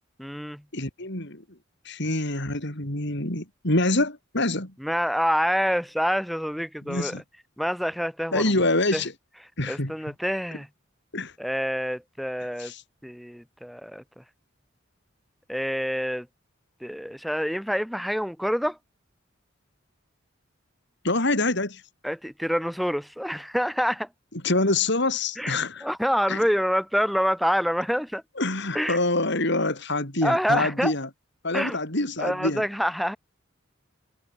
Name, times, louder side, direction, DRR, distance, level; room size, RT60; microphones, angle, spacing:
voice 1, 0.2-0.6 4.8-7.2 7.6-8.4 8.9-9.0 9.7-10.7 11.4-12.7 13.0-14.0 15.5-16.3 16.8-18.8 22.0-24.1 25.4-28.2 28.7-29.0 30.2-30.9 31.5-31.8 32.2-33.2, equal, ahead, 6.3 m, -27 dB
voice 2, 0.7-1.4 1.8-4.7 6.8-7.2 8.3-9.1 9.6-9.9 11.1-11.3 12.6-12.8 21.0-21.8 24.4-25.9 26.3-26.4 28.4-31.1 31.4-32.7, left 2 dB, 60° left, 6.0 m, -26 dB
head